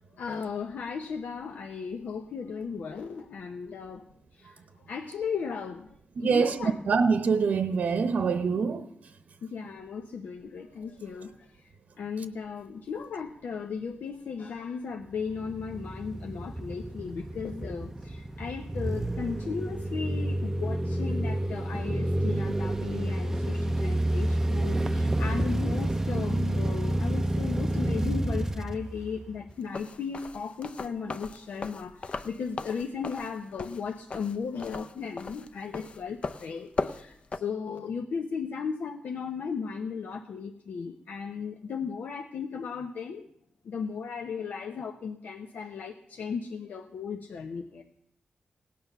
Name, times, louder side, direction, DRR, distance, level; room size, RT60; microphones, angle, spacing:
voice 1, 0.2-4.0 4.4-4.5 4.9-5.9 6.2-6.8 9.4-11.3 12.0-43.2 43.7-47.8, left 6 dB, 85° left, 0.9 m, -36 dB
voice 2, 6.2-8.8, right 5 dB, 65° right, 0.8 m, -25 dB
sound 1, 15.2-29.5, right 1 dB, 15° right, 0.5 m, -29 dB
sound 2, 29.6-37.4, left 3 dB, 40° left, 0.6 m, -37 dB
17.5 x 9.5 x 6.8 m
wide cardioid pair, 165°, 3 cm